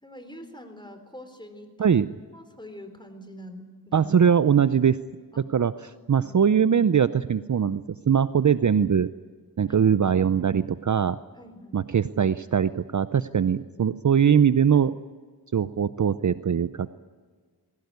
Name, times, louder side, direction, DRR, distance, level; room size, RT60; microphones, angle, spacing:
voice 1, 0.0-1.9 2.3-4.0 5.3-5.5 5.9-6.3 9.7-10.1 11.4-11.8, equal, 10° left, 7 dB, 3.8 m, -45 dB
voice 2, 3.9-5.0 5.5-9.1 9.6-11.2 11.7-15.0 15.5-16.9, right 7 dB, 45° right, 14 dB, 0.6 m, -21 dB
21.0 x 17.0 x 9.5 m, 1.5 s
wide cardioid pair, 55°, 41 cm